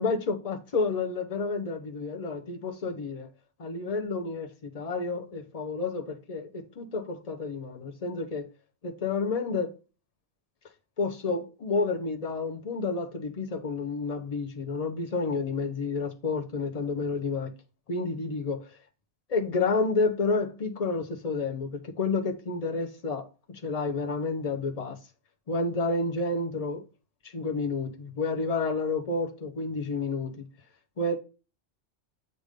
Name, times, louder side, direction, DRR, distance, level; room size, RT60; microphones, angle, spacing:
voice 1, 0.0-3.3 3.6-8.5 8.8-9.8 11.0-17.5 17.9-18.8 19.3-25.0 25.5-26.8 27.3-30.5 31.0-31.2, left 3 dB, 35° left, 0.9 m, -30 dB
7.8 x 2.7 x 5.1 m
omnidirectional pair, 1.2 m